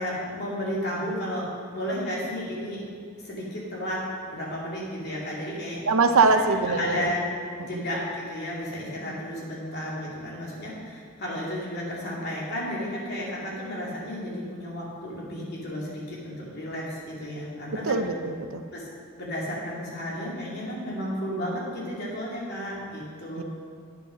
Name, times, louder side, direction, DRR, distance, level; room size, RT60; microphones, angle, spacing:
voice 1, 0.0-2.8 3.2-4.0 4.3-5.8 6.5-7.2 7.7-18.0 18.7-18.9 19.2-23.4, equal, 50° left, -5 dB, 2.7 m, -33 dB
voice 2, 5.9-7.1 7.6-7.8 17.8-18.6 23.4-23.5, right 4 dB, 80° right, 7 dB, 0.7 m, -23 dB
9.4 x 7.2 x 6.1 m, 2.1 s
head